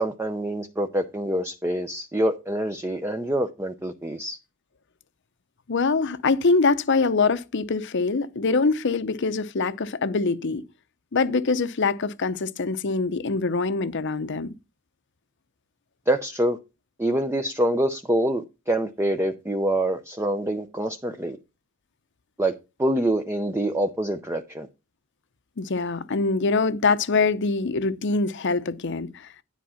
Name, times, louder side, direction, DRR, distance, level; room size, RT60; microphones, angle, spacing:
voice 1, 0.0-4.4 16.1-16.6 17.0-21.4 22.4-22.5 22.8-24.7, right 1 dB, 10° right, 0.6 m, -25 dB
voice 2, 5.7-10.6 11.1-14.5 25.6-29.3, left 4 dB, 55° left, 0.7 m, -24 dB
10.5 x 4.9 x 5.6 m
head